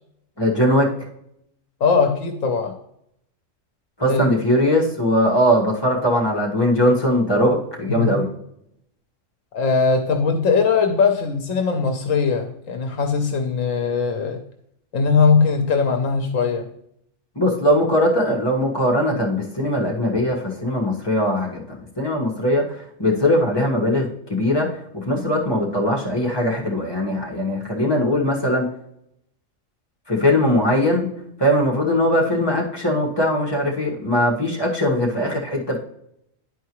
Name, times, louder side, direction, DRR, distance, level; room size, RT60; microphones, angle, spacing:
voice 1, 0.4-0.9 4.0-8.3 17.3-28.7 30.1-31.1 31.4-35.8, left 1 dB, 20° left, -3 dB, 1.5 m, -20 dB
voice 2, 1.8-2.8 4.1-4.2 7.9-8.2 9.5-14.4 14.9-16.7, left 5 dB, 80° left, 4 dB, 1.1 m, -20 dB
11.0 x 4.6 x 3.0 m, 0.76 s
omnidirectional pair, 1.4 m